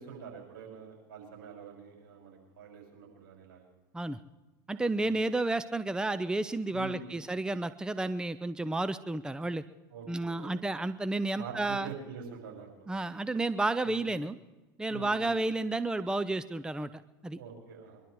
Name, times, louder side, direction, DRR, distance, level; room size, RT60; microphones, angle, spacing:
voice 1, 0.0-3.7 5.0-5.2 6.7-7.2 9.9-10.6 11.3-12.9 13.8-14.1 14.9-15.3 17.3-18.0, right 6 dB, 75° right, 0 dB, 6.4 m, -45 dB
voice 2, 4.7-9.6 10.1-11.9 12.9-14.4 14.8-17.4, right 2 dB, 5° right, 14 dB, 0.7 m, -31 dB
23.5 x 12.0 x 4.8 m, 1.1 s
hypercardioid pair, 85°, 11 cm